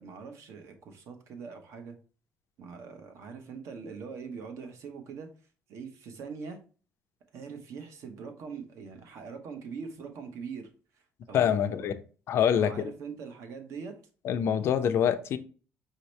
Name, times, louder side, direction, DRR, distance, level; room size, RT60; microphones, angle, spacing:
voice 1, 0.0-2.0 2.6-5.3 5.7-6.6 7.3-10.7 10.9-11.9 12.5-14.0, right 5 dB, 60° right, 0.9 m, -42 dB
voice 2, 11.3-12.0 12.3-12.7 14.2-15.4, left 9 dB, 50° left, 0.4 m, -25 dB
5.3 x 2.8 x 3.1 m
cardioid pair, 165°, 5 cm